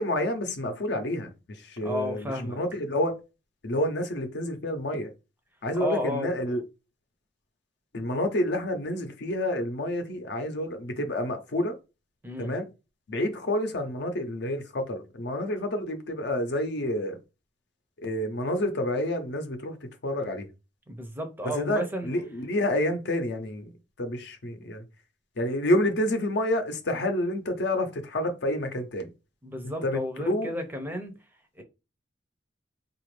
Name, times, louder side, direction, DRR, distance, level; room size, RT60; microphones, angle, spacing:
voice 1, 0.0-3.1 3.6-5.1 5.6-6.6 7.9-11.7 12.4-12.7 13.1-17.2 18.0-19.8 20.0-20.5 21.4-24.8 25.4-29.1 29.6-30.5, left 1 dB, 65° left, 0.7 m, -29 dB
voice 2, 1.8-2.6 5.8-6.3 12.2-12.6 20.9-22.1 29.4-31.2 31.6-31.7, left 1 dB, 10° right, 0.5 m, -32 dB
4.0 x 2.4 x 3.1 m
head